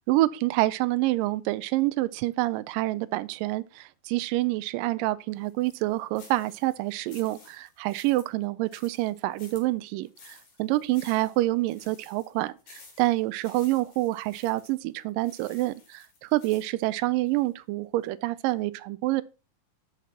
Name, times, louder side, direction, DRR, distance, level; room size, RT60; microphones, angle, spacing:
voice 1, 0.1-19.2, right 18 dB, 85° right, 2.2 m, -27 dB
sound 1, 5.4-17.5 18.0-18.1 18.5-18.6, left 4 dB, 85° left, 5.3 m, -54 dB
13.0 x 5.9 x 4.2 m
omnidirectional pair, 3.9 m